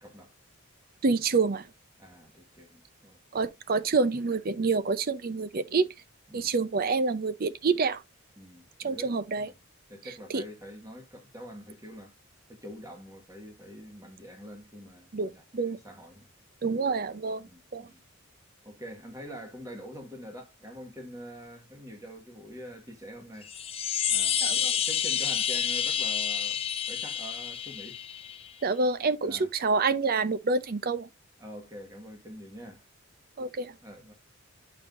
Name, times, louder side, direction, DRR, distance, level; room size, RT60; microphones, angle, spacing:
voice 1, 0.0-0.3 2.0-3.2 6.3-6.6 8.4-9.5 9.9-12.1 12.5-16.3 16.6-16.8 17.4-18.0 18.6-23.5 24.1-26.6 26.9-28.0 29.2-29.5 31.4-32.8 33.8-34.1, equal, 15° right, 1.5 m, -45 dB
voice 2, 1.0-1.6 3.3-5.9 6.3-8.0 8.8-9.5 10.3-10.4 15.1-15.8 16.6-17.9 24.4-24.7 28.6-31.1 33.4-33.7, right 4 dB, 45° right, 0.5 m, -27 dB
sound 1, 23.4-28.5, left 8 dB, 25° left, 0.6 m, -29 dB
8.4 x 5.3 x 2.5 m
head